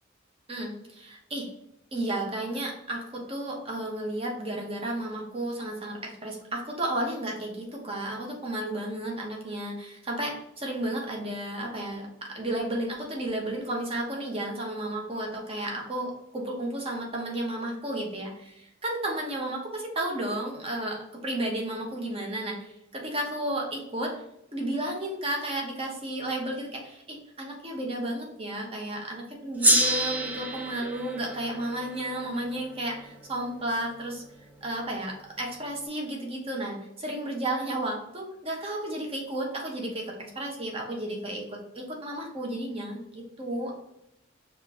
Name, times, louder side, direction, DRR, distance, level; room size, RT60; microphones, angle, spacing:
voice 1, 0.5-1.5 1.9-24.1 24.5-34.2 34.6-43.7, right 1 dB, 30° right, 0 dB, 0.9 m, -33 dB
Gong, 29.6-34.3, right 1 dB, 10° right, 0.4 m, -28 dB
5.1 x 2.5 x 3.6 m, 0.81 s
head